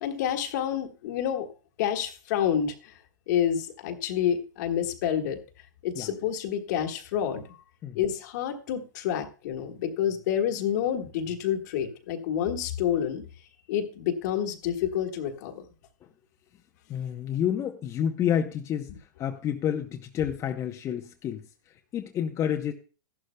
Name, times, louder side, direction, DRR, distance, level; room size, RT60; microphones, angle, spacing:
voice 1, 0.0-1.5 1.8-3.0 3.3-5.4 5.8-7.6 7.9-13.2 13.7-15.6, left 9 dB, 60° left, 5 dB, 1.6 m, -28 dB
voice 2, 16.9-18.9 19.2-21.4 21.9-22.7, left 9 dB, 30° left, 3 dB, 0.8 m, -29 dB
14.0 x 11.5 x 2.2 m, 0.36 s
hypercardioid pair, 120°, 11 cm